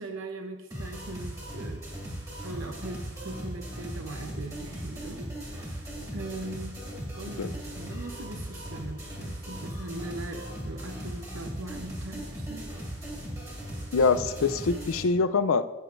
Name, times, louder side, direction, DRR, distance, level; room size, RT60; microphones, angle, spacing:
voice 1, 0.0-1.8 2.4-5.8 6.1-6.8 7.1-12.7, right 2 dB, 70° right, 4 dB, 0.8 m, -40 dB
sound 1, 0.7-15.0, equal, 15° right, 2.2 m, -38 dB
voice 2, 13.9-15.6, left 4 dB, 80° left, 12 dB, 0.5 m, -24 dB
14.5 x 8.1 x 2.6 m, 1.1 s
head